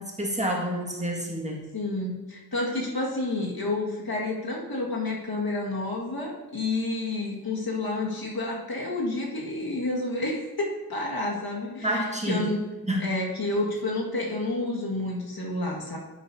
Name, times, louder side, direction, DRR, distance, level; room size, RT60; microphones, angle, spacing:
voice 1, 0.0-1.6 11.8-12.6 12.9-13.2, equal, 20° right, -2 dB, 1.9 m, -28 dB
voice 2, 1.7-12.0 12.3-12.6 13.0-16.0, left 2 dB, 70° left, -3 dB, 1.8 m, -30 dB
10.0 x 8.4 x 2.7 m, 1.2 s
wide cardioid pair, 55°, 38 cm